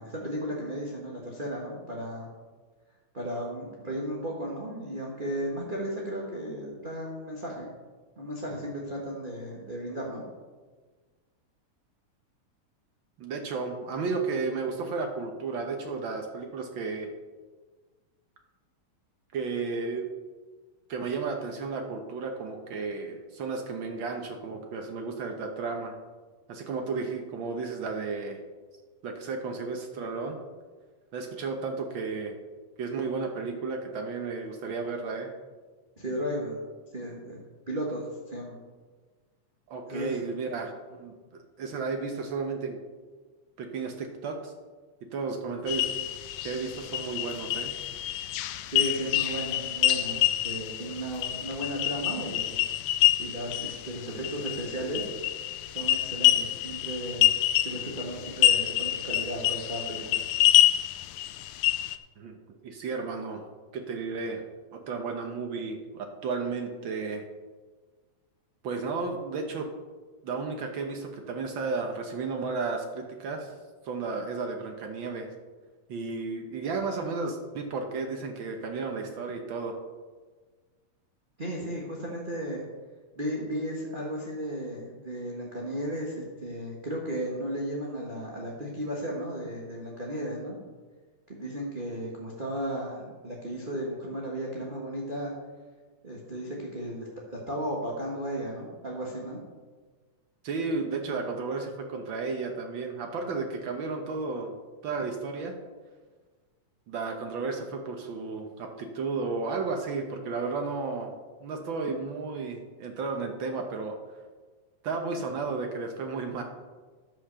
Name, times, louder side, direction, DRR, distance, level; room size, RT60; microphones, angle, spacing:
voice 1, 0.0-2.3 3.1-7.7 8.2-10.2 36.0-36.6 36.9-38.6 39.9-40.2 48.6-52.6 53.2-55.1 55.7-57.3 57.6-60.2 81.4-82.6 83.2-90.6 91.3-95.3 96.0-99.4, right 1 dB, 30° right, -3 dB, 0.9 m, -35 dB
voice 2, 13.2-17.1 19.3-20.1 20.9-25.9 26.5-28.4 29.0-30.4 31.1-32.3 32.8-35.3 39.7-41.1 41.6-42.8 43.6-44.5 45.0-45.9 46.4-47.7 62.2-63.4 63.7-64.4 64.7-67.2 68.6-69.7 70.2-73.5 73.8-75.3 75.9-79.8 100.4-104.5 104.8-105.5 106.9-111.1 111.4-114.0 114.8-116.4, right 4 dB, 85° right, 3 dB, 1.1 m, -33 dB
sound 1, 45.7-62.0, left 13 dB, 80° left, 1.7 m, -27 dB
11.5 x 5.7 x 6.7 m, 1.4 s
omnidirectional pair, 3.6 m